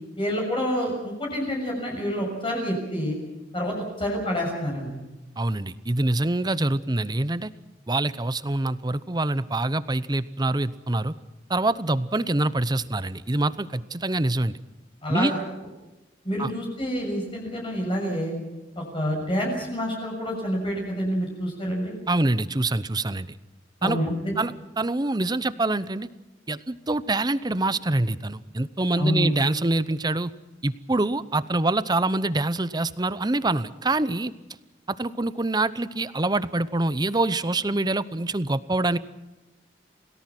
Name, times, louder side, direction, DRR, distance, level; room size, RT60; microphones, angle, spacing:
voice 1, 0.2-3.2 3.5-4.9 15.0-15.4 16.2-18.3 18.7-21.9 23.8-24.3 29.0-29.3, equal, 30° left, -1 dB, 6.5 m, -27 dB
voice 2, 5.4-7.5 7.9-11.1 11.5-14.6 15.1-15.3 16.4-16.5 22.1-23.3 23.8-24.0 24.4-26.1 26.5-30.3 30.6-34.3 34.9-39.0, right 2 dB, 20° right, 15 dB, 0.8 m, -25 dB
28.5 x 18.5 x 6.0 m, 1.0 s
head